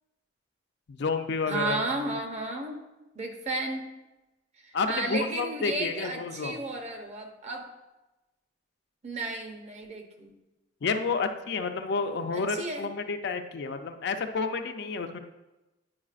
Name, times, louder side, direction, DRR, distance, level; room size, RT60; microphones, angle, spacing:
voice 1, 0.9-2.0 4.7-6.6 10.8-15.2, left 4 dB, 65° left, 7 dB, 0.5 m, -30 dB
voice 2, 1.5-2.8 3.2-3.9 4.6-7.7 9.0-10.3 12.3-12.9, right 2 dB, 40° right, 3 dB, 0.8 m, -33 dB
9.5 x 4.7 x 2.5 m, 1.0 s
head